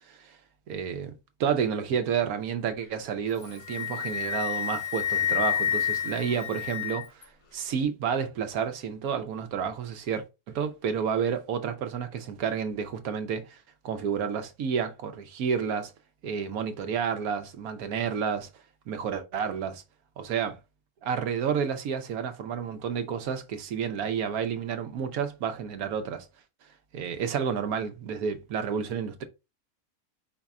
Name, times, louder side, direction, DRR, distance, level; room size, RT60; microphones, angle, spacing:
voice 1, 0.7-1.1 1.4-7.3 7.5-15.9 16.2-18.5 18.9-19.8 20.2-20.6 21.0-26.3 26.9-29.2, right 7 dB, 70° right, 1.2 m, -30 dB
Wind instrument woodwind instrument, 3.3-7.2, left 9 dB, 75° left, 2.0 m, -29 dB
5.0 x 2.4 x 4.1 m
omnidirectional pair, 1.6 m